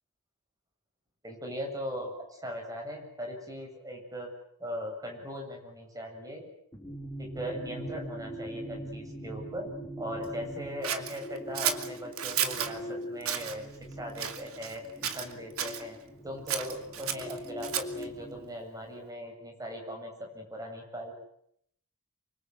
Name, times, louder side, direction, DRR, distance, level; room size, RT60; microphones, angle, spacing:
voice 1, 1.2-4.3 4.6-6.5 7.2-9.7 10.0-13.7 14.0-16.0 16.2-21.1, equal, 15° right, 2 dB, 7.9 m, -39 dB
sound 1, 6.7-18.4, equal, 15° left, 6.8 m, -42 dB
Scissors, 10.8-12.7 13.2-13.6 14.2-14.8 15.0-15.8 16.5-18.0, right 9 dB, 75° right, 2.7 m, -32 dB
27.5 x 25.0 x 8.1 m, 0.71 s
head